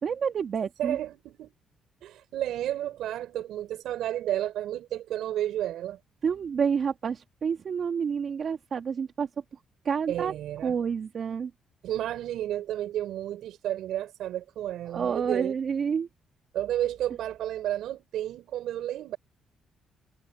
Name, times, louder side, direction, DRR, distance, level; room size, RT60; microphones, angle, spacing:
voice 1, 0.0-1.0 6.2-9.3 9.9-10.3 10.6-11.5 14.9-16.1, right 6 dB, 50° right, 1.8 m, -29 dB
voice 2, 0.8-1.5 2.0-6.0 10.1-10.8 11.8-15.5 16.5-19.2, right 12 dB, 80° right, 5.1 m, -32 dB
cardioid pair, 90°, 0 cm